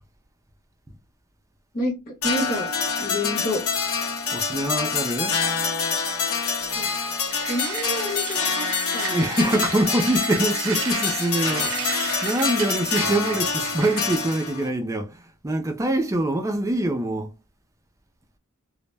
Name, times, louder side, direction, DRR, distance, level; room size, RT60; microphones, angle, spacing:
voice 1, 1.7-2.7 3.0-3.6 6.7-6.8 7.5-9.5, left 1 dB, 45° left, 0.9 m, -29 dB
sound 1, 2.2-14.7, left 5 dB, 85° left, 0.7 m, -26 dB
voice 2, 4.3-5.4 9.1-15.2 15.4-17.3, right 1 dB, 15° right, 0.3 m, -24 dB
sound 2, 7.3-14.4, right 8 dB, 75° right, 0.5 m, -34 dB
2.0 x 2.0 x 3.2 m
head